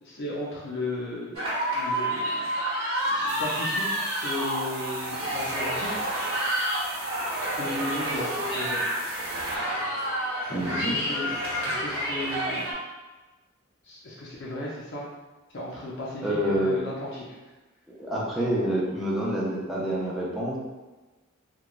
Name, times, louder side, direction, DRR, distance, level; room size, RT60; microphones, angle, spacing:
voice 1, 0.0-2.5 3.1-3.9 4.2-6.1 7.6-8.3 8.5-8.9 10.5-11.3 11.6-12.7 13.8-15.0 15.5-17.2, left 2 dB, 55° left, -5 dB, 0.5 m, -35 dB
sound 1, 1.3-12.7, equal, 90° right, 1.0 m, -29 dB
sound 2, 3.3-9.6, right 6 dB, 70° right, 0.3 m, -42 dB
voice 2, 10.5-11.0 16.2-16.8 18.0-20.6, right 1 dB, ahead, -6 dB, 0.5 m, -27 dB
3.0 x 2.2 x 2.4 m, 1.2 s
head